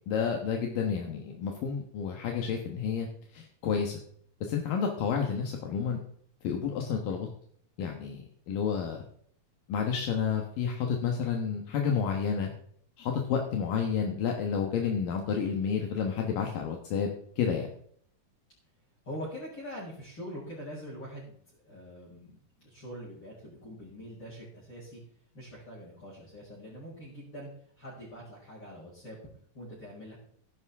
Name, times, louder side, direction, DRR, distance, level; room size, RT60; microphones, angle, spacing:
voice 1, 0.1-4.0 4.4-6.0 6.4-7.3 7.8-9.0 9.7-12.5 13.0-17.1 17.4-17.7, left 6 dB, 70° left, 2 dB, 3.0 m, -30 dB
voice 2, 19.0-21.4 21.6-25.0 25.3-27.5 27.8-29.2 29.5-30.2, equal, 30° left, -8 dB, 6.2 m, -43 dB
14.5 x 12.0 x 3.6 m, 0.62 s
omnidirectional pair, 4.1 m